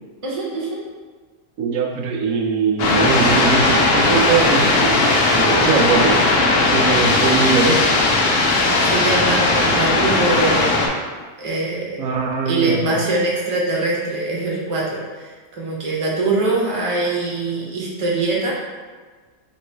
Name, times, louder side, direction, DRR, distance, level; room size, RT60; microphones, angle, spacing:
voice 1, 0.2-0.8 5.5-5.6 8.3-10.9 11.4-12.0 12.4-18.5, right 3 dB, 30° right, -4 dB, 0.7 m, -23 dB
voice 2, 1.6-6.2 6.7-7.9 12.0-13.0, right 5 dB, 90° right, 2 dB, 1.0 m, -21 dB
sound 1, 2.8-10.9, left 2 dB, 60° left, 0.7 m, -17 dB
3.1 x 3.0 x 4.4 m, 1.4 s
omnidirectional pair, 1.4 m